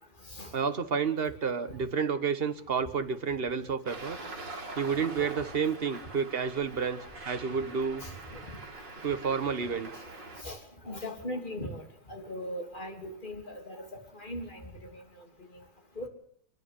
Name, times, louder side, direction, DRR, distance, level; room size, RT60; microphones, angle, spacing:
voice 1, 0.5-4.2 4.8-7.0 7.3-8.0 9.0-9.9, right 6 dB, 35° right, 10 dB, 1.3 m, -30 dB
Traffic noise roadway noise, 3.9-10.4, right 2 dB, 75° right, 4.5 m, -44 dB
voice 2, 10.8-15.0 16.0-16.1, left 1 dB, 25° left, 4 dB, 3.4 m, -39 dB
28.5 x 10.5 x 10.0 m, 0.63 s
omnidirectional pair, 1.9 m